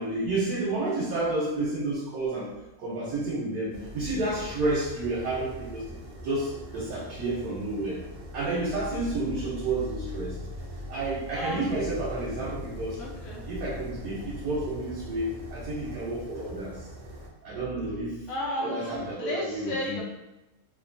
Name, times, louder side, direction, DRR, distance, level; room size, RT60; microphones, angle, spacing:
voice 1, 0.0-2.5 2.8-6.0 6.2-8.0 8.3-10.4 10.9-13.0 13.5-16.9 17.4-18.3 18.6-20.0, right 2 dB, 85° right, -6 dB, 1.2 m, -30 dB
sound 1, 3.7-17.3, left 1 dB, 70° right, 0.5 m, -41 dB
voice 2, 11.3-11.8 13.0-13.5 18.3-20.0, left 1 dB, 65° left, -3 dB, 1.0 m, -34 dB
2.9 x 2.5 x 2.5 m, 0.97 s
omnidirectional pair, 1.5 m